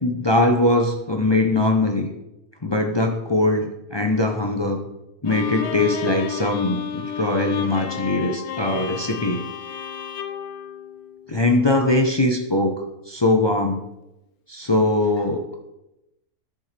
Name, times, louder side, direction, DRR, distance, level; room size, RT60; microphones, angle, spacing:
voice 1, 0.0-2.1 2.6-4.8 5.2-9.4 11.3-13.8 14.5-15.6, left 2 dB, 40° left, 2 dB, 0.4 m, -21 dB
Bowed string instrument, 5.3-11.5, left 8 dB, 85° left, 1.2 m, -31 dB
11.5 x 7.0 x 3.3 m, 0.92 s
omnidirectional pair, 1.6 m